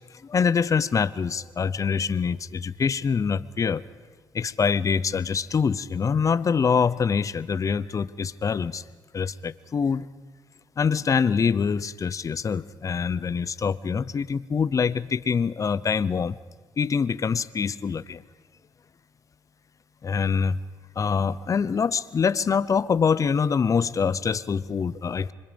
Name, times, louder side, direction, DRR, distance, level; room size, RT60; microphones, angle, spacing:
voice 1, 0.2-3.8 4.3-8.8 9.1-10.1 10.8-16.4 16.8-18.2 20.0-20.6 21.0-25.3, left 6 dB, 45° left, 17 dB, 0.8 m, -25 dB
27.0 x 24.5 x 5.3 m, 1.4 s
cardioid pair, 75°, 8 cm